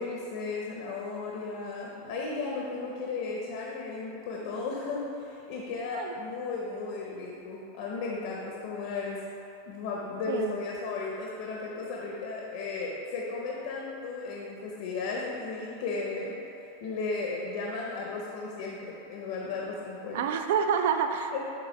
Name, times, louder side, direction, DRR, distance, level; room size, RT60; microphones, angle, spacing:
voice 1, 0.0-9.2 9.7-16.4 16.8-20.3 21.3-21.4, left 4 dB, 60° left, -2 dB, 0.8 m, -35 dB
voice 2, 20.1-21.4, right 7 dB, 70° right, 7 dB, 0.4 m, -28 dB
7.0 x 3.3 x 4.5 m, 2.7 s
supercardioid pair, 150°, 0 cm